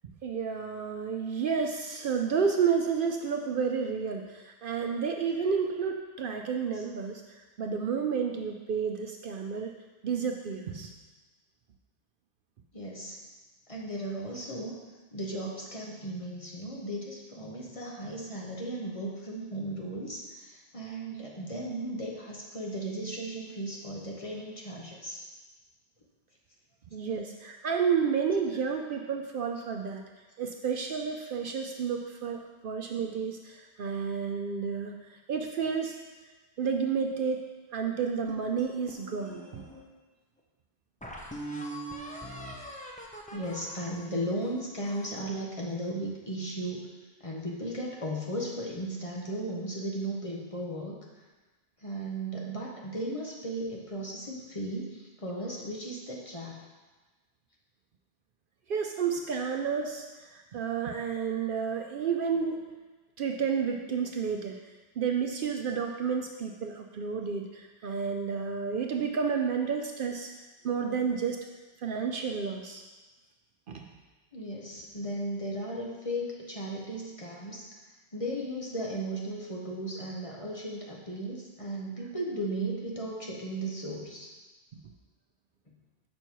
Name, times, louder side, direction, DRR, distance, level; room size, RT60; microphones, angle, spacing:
voice 1, 0.0-9.7 10.0-10.9 26.9-30.0 30.4-36.0 36.6-37.4 37.7-39.6 58.7-62.6 63.2-64.6 65.0-70.3 70.6-71.5 71.8-72.8 73.7-73.9 84.7-84.8, right 6 dB, 60° right, 3 dB, 0.7 m, -31 dB
voice 2, 12.7-13.2 13.7-14.7 15.1-25.3 43.3-46.8 47.2-51.0 51.8-56.6 74.3-77.6 78.1-84.3, right 1 dB, 30° left, -3 dB, 1.1 m, -36 dB
sound 1, 38.3-39.8 40.4-40.5 41.0-45.2, right 1 dB, 10° left, 0.7 m, -42 dB
6.7 x 5.4 x 4.5 m, 1.2 s
omnidirectional pair, 1.1 m